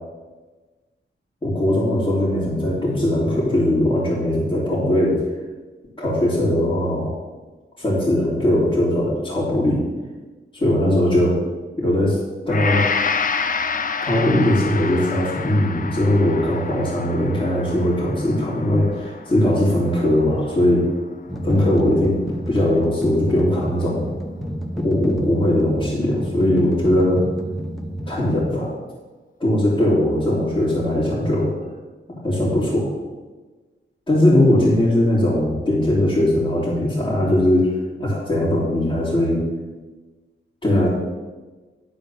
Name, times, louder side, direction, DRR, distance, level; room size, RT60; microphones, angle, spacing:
voice 1, 1.4-5.2 6.0-7.2 7.8-9.8 10.5-11.4 11.8-12.2 12.5-12.8 14.0-20.8 21.4-22.2 22.5-24.0 24.8-27.2 28.1-28.7 29.4-31.5 32.2-32.9 34.1-37.7 38.0-39.4 40.6-40.9, left 1 dB, 25° left, -10 dB, 2.7 m, -19 dB
Gong, 12.5-20.8 21.2-21.4, left 5 dB, 40° left, 0.5 m, -28 dB
sound 1, 21.3-28.2, equal, ahead, 0.9 m, -29 dB
10.5 x 4.4 x 6.9 m, 1.3 s
wide cardioid pair, 145°, 21 cm